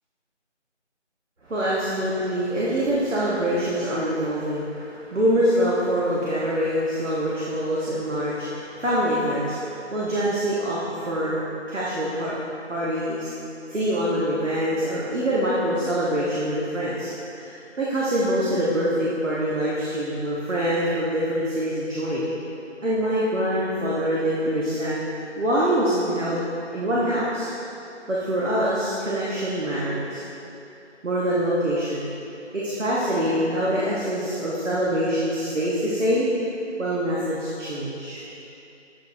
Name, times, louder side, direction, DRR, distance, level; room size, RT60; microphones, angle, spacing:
voice 1, 1.4-11.4 11.7-12.4 12.7-13.3 13.7-22.3 22.8-25.0 25.4-26.4 26.7-27.5 28.1-30.2 31.0-32.1 32.5-36.3 36.8-38.2, equal, 90° right, -7 dB, 1.2 m, -25 dB
7.6 x 5.2 x 2.7 m, 2.8 s
figure-of-eight pair, 175°, 36 cm